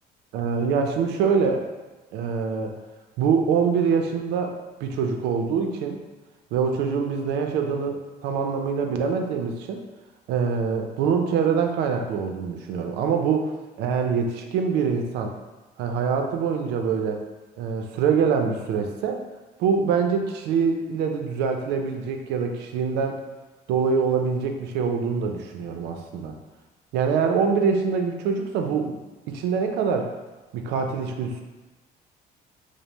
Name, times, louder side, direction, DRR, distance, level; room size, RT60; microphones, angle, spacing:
voice 1, 0.3-1.7 2.1-2.8 3.2-4.5 4.8-6.0 6.5-9.8 10.3-15.3 15.8-17.2 17.6-19.2 19.6-23.2 23.7-26.3 26.9-29.0 29.3-30.1 30.5-31.4, right 6 dB, 85° right, 4 dB, 0.5 m, -24 dB
5.1 x 2.0 x 2.9 m, 1.2 s
cardioid pair, 110°, 17 cm